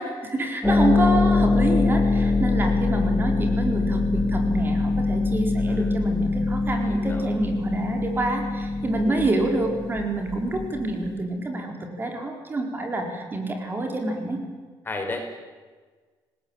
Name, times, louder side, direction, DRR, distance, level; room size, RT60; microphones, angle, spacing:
voice 1, 0.0-14.4, right 2 dB, 25° right, 3 dB, 4.5 m, -27 dB
Harp, 0.6-11.2, left 3 dB, 5° left, 3.8 m, -23 dB
voice 2, 6.9-7.2 9.1-9.3 14.8-15.4, left 2 dB, 25° left, 4 dB, 4.8 m, -33 dB
28.0 x 20.0 x 8.9 m, 1.4 s
cardioid pair, 130°, 8 cm